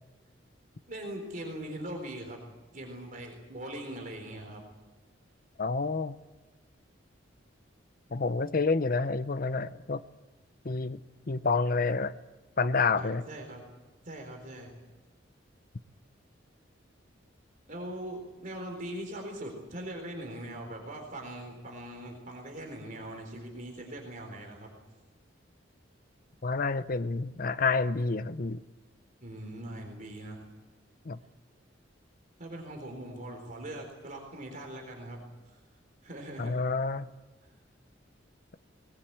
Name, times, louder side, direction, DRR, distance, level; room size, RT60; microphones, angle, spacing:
voice 1, 0.9-2.4 2.7-4.6 13.0-13.6 14.0-14.7 17.7-24.7 29.2-30.4 32.4-35.6 36.0-36.6, right 1 dB, 45° right, 2 dB, 3.9 m, -41 dB
voice 2, 5.6-6.1 8.1-10.0 10.6-11.0 11.3-12.1 12.6-13.2 26.4-28.6 31.1-31.2 36.4-37.1, left 4 dB, 50° left, 12 dB, 0.7 m, -28 dB
21.0 x 20.5 x 8.8 m, 1.2 s
head